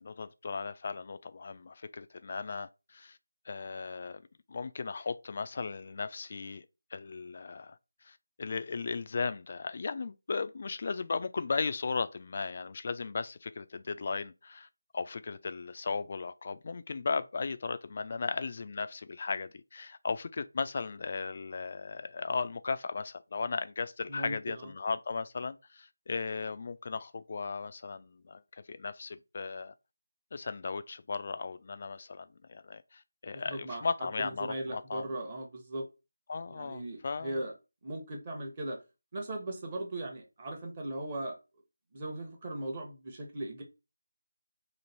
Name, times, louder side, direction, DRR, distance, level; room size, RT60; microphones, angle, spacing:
voice 1, 0.0-3.2 3.5-4.2 4.5-6.7 6.9-7.8 8.0-14.7 14.9-28.4 28.7-29.7 30.3-35.1 36.3-37.4, left 4 dB, 35° left, 0.3 m, -36 dB
voice 2, 24.1-24.7 33.5-35.8 36.5-37.5 37.8-38.8 39.1-41.4 41.9-43.6, right 1 dB, 25° right, 0.8 m, -38 dB
3.1 x 2.5 x 4.1 m
figure-of-eight pair, 160°, 0 cm